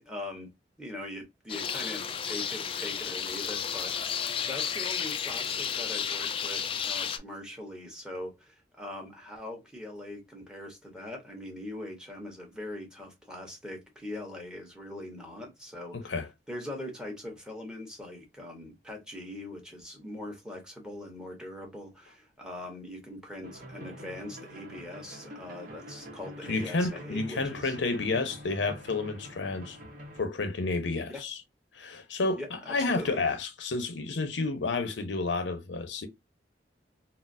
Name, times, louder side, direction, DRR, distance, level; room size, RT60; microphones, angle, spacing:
voice 1, 0.1-0.5 0.8-16.2 16.5-27.7 31.1-31.2 32.4-33.2, left 1 dB, 5° right, 1.0 m, -42 dB
sound 1, 1.5-7.2, left 7 dB, 30° left, 0.3 m, -32 dB
voice 2, 15.9-16.3 26.5-29.8 30.2-31.4 31.7-32.4 32.7-36.1, left 3 dB, 90° left, 0.7 m, -30 dB
sound 2, 23.4-30.2, equal, 50° right, 0.9 m, -46 dB
3.9 x 2.0 x 2.5 m
head